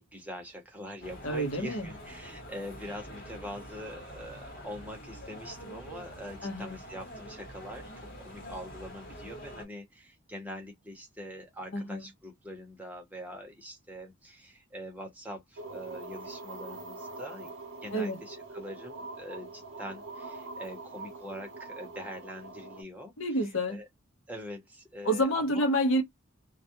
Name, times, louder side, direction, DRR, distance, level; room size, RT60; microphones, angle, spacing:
voice 1, 0.0-17.5 17.8-23.1 23.7-23.8 24.3-25.7, equal, 5° right, 0.7 m, -43 dB
sound 1, 1.0-9.7, equal, 45° left, 1.0 m, -46 dB
voice 2, 1.2-1.9 6.4-6.8 11.7-12.1 17.9-18.2 23.2-23.8 25.0-26.0, equal, 70° left, 0.8 m, -28 dB
sound 2, 15.6-22.8, right 3 dB, 65° right, 0.7 m, -44 dB
2.3 x 2.1 x 2.8 m
head